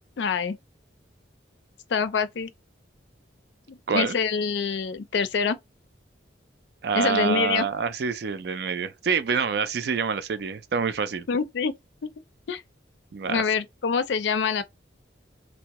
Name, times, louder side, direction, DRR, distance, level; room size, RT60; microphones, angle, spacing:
voice 1, 0.2-0.6 1.9-2.5 3.7-5.6 6.9-7.7 11.3-11.7 12.5-12.6 13.3-14.6, left 5 dB, 75° left, 0.4 m, -25 dB
voice 2, 6.8-11.3 13.1-13.4, right 6 dB, 60° right, 0.4 m, -26 dB
3.5 x 2.1 x 2.9 m
head